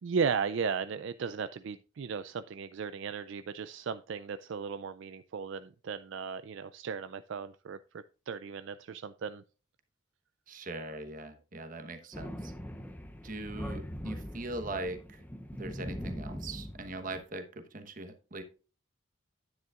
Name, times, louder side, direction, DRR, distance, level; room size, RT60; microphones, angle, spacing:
voice 1, 0.0-9.4, right 6 dB, 60° right, 12 dB, 0.4 m, -36 dB
voice 2, 10.5-12.5 13.2-15.2 15.5-18.4, right 2 dB, 40° right, 7 dB, 1.1 m, -41 dB
Thunder, 12.1-17.2, equal, 10° left, 0.6 m, -41 dB
10.5 x 9.4 x 2.4 m, 0.36 s
head